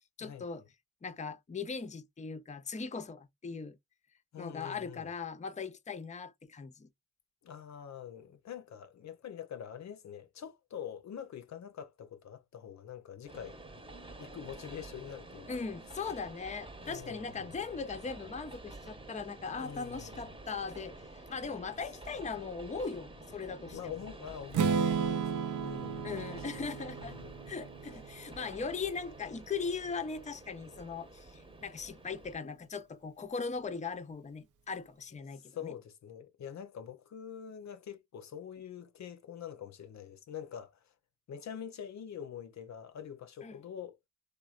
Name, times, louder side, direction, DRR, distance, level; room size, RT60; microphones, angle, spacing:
voice 1, 0.2-0.6 1.0-3.8 4.4-6.9 15.5-23.9 26.0-27.2 27.5-35.7 43.4-43.6, left 5 dB, 25° left, 0.6 m, -39 dB
voice 2, 4.3-5.1 7.4-13.6 14.2-15.6 16.8-17.5 19.6-20.3 23.7-25.3 25.6-26.2 27.0-27.5 35.3-40.9 41.3-44.0, left 9 dB, 65° left, 0.6 m, -45 dB
Train, 13.2-32.4, right 2 dB, 15° right, 0.9 m, -50 dB
Strum, 24.5-28.5, right 6 dB, 75° right, 0.6 m, -33 dB
3.1 x 2.2 x 2.4 m
cardioid pair, 60°, 31 cm